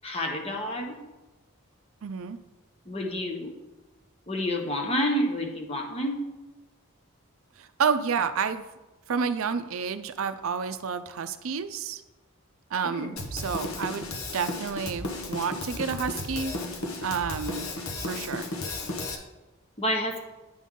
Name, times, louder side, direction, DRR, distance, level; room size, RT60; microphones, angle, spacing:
voice 1, 0.0-1.0 2.9-3.5 4.3-6.2 13.0-13.2 19.8-20.2, equal, 30° left, 1 dB, 1.1 m, -29 dB
voice 2, 2.0-2.4 7.6-8.7 9.1-12.0 12.7-14.0 14.3-16.5 17.0-17.7 18.1-18.5, right 6 dB, 75° right, 11 dB, 0.5 m, -30 dB
Drum kit, 13.2-19.2, left 2 dB, 85° left, 1.1 m, -34 dB
9.4 x 5.4 x 3.7 m, 1.1 s
head